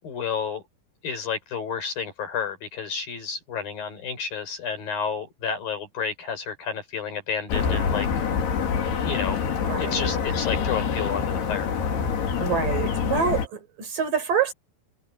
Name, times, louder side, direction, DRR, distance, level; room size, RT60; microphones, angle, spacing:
voice 1, 0.0-0.6 1.0-8.3 9.0-9.4 9.8-11.7, left 6 dB, 60° left, 6.9 m, -31 dB
sound 1, 7.5-13.5, left 6 dB, 75° left, 5.2 m, -26 dB
voice 2, 9.6-10.2 12.4-14.5, right 7 dB, 55° right, 6.2 m, -26 dB
omnidirectional pair, 4.7 m